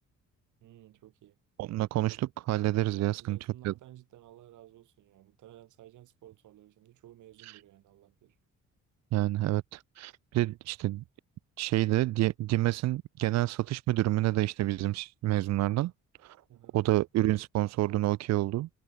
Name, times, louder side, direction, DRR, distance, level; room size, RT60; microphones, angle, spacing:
voice 1, 0.6-1.4 3.0-8.4 16.5-16.8, right 14 dB, 80° right, 2.3 m, -54 dB
voice 2, 1.6-3.4 3.6-3.7 7.4-7.6 9.1-11.0 11.6-15.9 16.2-16.4 16.7-18.7, right 16 dB, 60° right, 0.4 m, -28 dB
cardioid pair, 90°, 30 cm